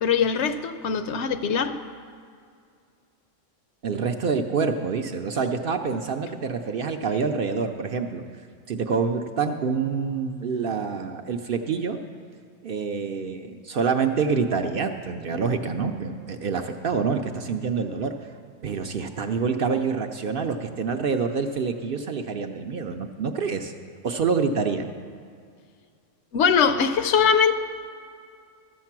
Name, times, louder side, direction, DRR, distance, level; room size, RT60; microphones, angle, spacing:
voice 1, 0.0-1.8 26.3-27.5, left 6 dB, 70° left, 10 dB, 0.9 m, -21 dB
voice 2, 3.8-8.2 8.7-12.0 12.6-18.1 18.6-23.7 24.0-24.9, right 5 dB, 60° right, 5 dB, 0.7 m, -26 dB
13.0 x 7.4 x 5.9 m, 2.2 s
omnidirectional pair, 1.3 m